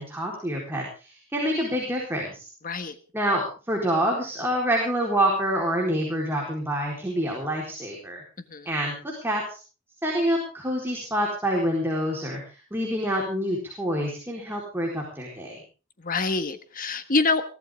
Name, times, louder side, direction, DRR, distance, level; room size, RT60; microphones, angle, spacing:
voice 1, 0.0-2.5 3.1-8.2 8.7-9.6 10.0-15.6, equal, 10° right, -1 dB, 4.2 m, -27 dB
voice 2, 2.6-2.9 8.5-8.7 16.0-17.4, left 3 dB, 40° left, 10 dB, 1.5 m, -25 dB
22.5 x 15.5 x 3.7 m, 0.35 s
head